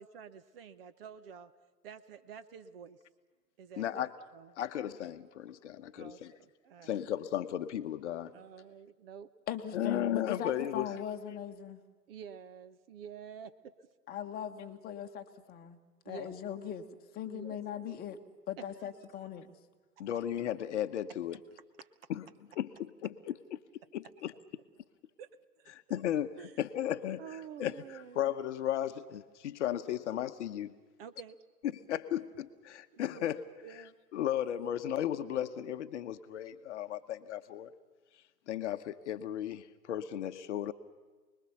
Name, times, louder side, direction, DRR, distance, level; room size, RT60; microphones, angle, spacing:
voice 1, 0.0-1.5 1.8-3.0 3.6-4.1 4.3-4.5 6.0-7.0 8.3-9.3 12.1-13.9 16.0-16.4 17.2-17.6 17.8-18.0 18.6-18.7 21.8-21.9 25.2-25.3 25.6-26.1 26.4-26.6 27.2-28.2 31.0-31.4 32.9-33.3 33.6-33.9, right 7 dB, 35° right, 12 dB, 1.0 m, -49 dB
voice 2, 3.8-4.1 4.6-6.3 6.8-8.3 9.7-10.9 20.0-21.4 22.1-22.3 22.6-23.6 23.9-24.3 25.9-27.2 27.6-27.7 28.1-30.8 31.7-33.4 34.1-37.7 38.5-40.7, left 11 dB, 45° left, 10 dB, 1.1 m, -35 dB
voice 3, 9.5-11.8 14.1-15.8 16.0-16.8 17.1-18.2 18.5-19.5, left 9 dB, 20° left, 7 dB, 1.3 m, -39 dB
29.0 x 21.0 x 7.1 m, 1.3 s
hypercardioid pair, 125°, 49 cm